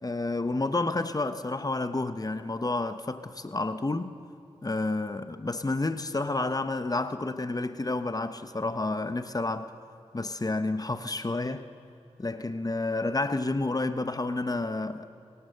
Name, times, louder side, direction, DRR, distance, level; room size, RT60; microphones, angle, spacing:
voice 1, 0.0-4.1 4.6-9.7 10.1-11.6 12.2-15.1, left 2 dB, 35° left, 1.0 m, -30 dB
21.5 x 18.0 x 6.8 m
cardioid pair, 40°, 12 cm